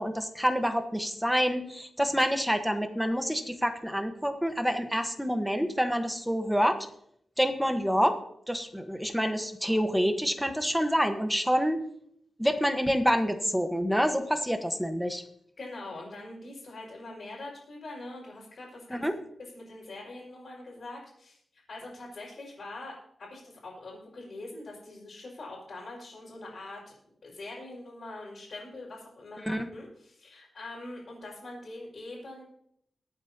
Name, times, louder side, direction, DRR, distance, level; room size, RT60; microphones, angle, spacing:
voice 1, 0.0-6.9 7.4-8.2 8.5-11.8 12.4-15.2 18.9-19.1 29.4-29.7, equal, ahead, 7 dB, 1.2 m, -27 dB
voice 2, 15.6-19.1 19.4-22.9 23.2-26.9 27.2-32.4, left 2 dB, 60° left, -7 dB, 5.1 m, -43 dB
23.0 x 8.9 x 2.9 m, 0.70 s
wide cardioid pair, 120°, 0 cm